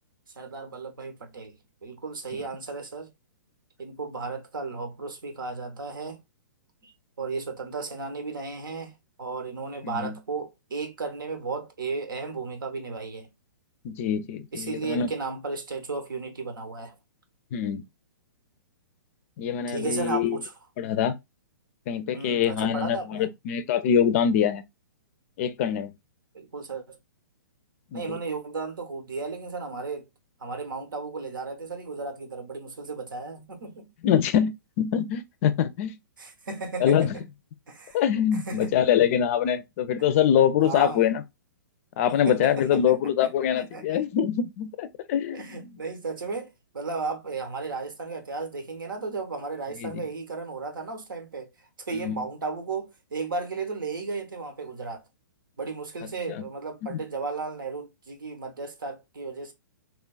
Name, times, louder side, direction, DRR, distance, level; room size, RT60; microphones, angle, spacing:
voice 1, 0.4-1.6 1.8-3.1 3.8-6.2 6.8-13.3 14.5-16.9 19.7-20.5 22.1-23.3 26.3-27.0 27.9-30.0 30.4-33.9 36.2-37.2 37.7-38.0 38.3-38.7 40.6-41.0 42.2-42.9 43.2-43.3 43.6-44.0 45.3-51.5 51.8-55.0 55.6-59.5, right 4 dB, 80° right, 1.0 m, -34 dB
voice 2, 13.8-15.1 17.5-17.8 19.4-20.4 20.8-21.2 21.9-24.6 25.4-25.9 27.9-28.2 34.0-36.0 36.8-37.1 37.9-41.2 42.0-45.6 49.8-50.0 51.9-52.2 56.3-56.4 56.9-57.0, left 9 dB, 45° left, 0.4 m, -24 dB
3.2 x 2.2 x 2.3 m
hypercardioid pair, 125°, 11 cm